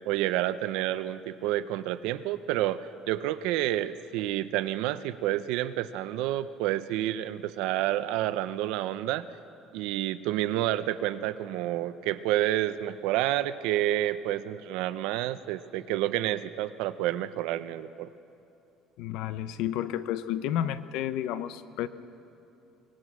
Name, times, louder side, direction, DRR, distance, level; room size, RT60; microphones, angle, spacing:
voice 1, 0.1-9.3 9.7-18.1, right 14 dB, 80° right, 13 dB, 0.7 m, -29 dB
voice 2, 19.0-21.9, left 11 dB, 65° left, 13 dB, 0.8 m, -31 dB
24.0 x 20.0 x 6.2 m, 2.8 s
cardioid pair, 170°, 0 cm